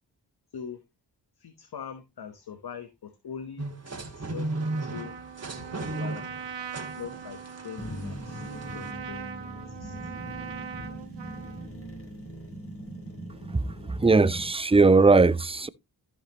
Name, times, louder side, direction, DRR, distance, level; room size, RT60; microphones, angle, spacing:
voice 1, 1.4-3.7 3.9-5.1 5.7-6.4 7.0-9.2 9.7-10.0 10.8-11.0, left 7 dB, 60° left, 1.3 m, -42 dB
sound 1, 3.6-8.9, right 2 dB, 35° right, 2.4 m, -36 dB
Trumpet, 4.5-11.7, right 7 dB, 80° right, 1.3 m, -41 dB
sound 2, 7.8-14.5, right 1 dB, 30° left, 4.6 m, -40 dB
voice 2, 14.0-15.7, right 3 dB, 15° right, 0.7 m, -19 dB
14.0 x 5.5 x 3.0 m
cardioid pair, 50°, 43 cm